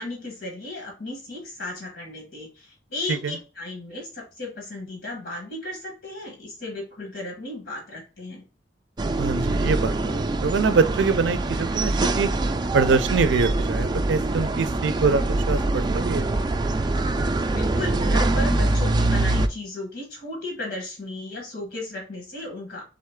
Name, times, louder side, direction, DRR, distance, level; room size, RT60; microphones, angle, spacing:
voice 1, 0.0-8.4 17.5-22.8, left 2 dB, 75° left, 1.3 m, -35 dB
sound 1, 9.0-19.5, right 2 dB, 25° right, 0.3 m, -24 dB
voice 2, 9.2-12.3 12.7-16.3, right 4 dB, 90° right, 0.4 m, -24 dB
3.9 x 3.2 x 3.5 m
head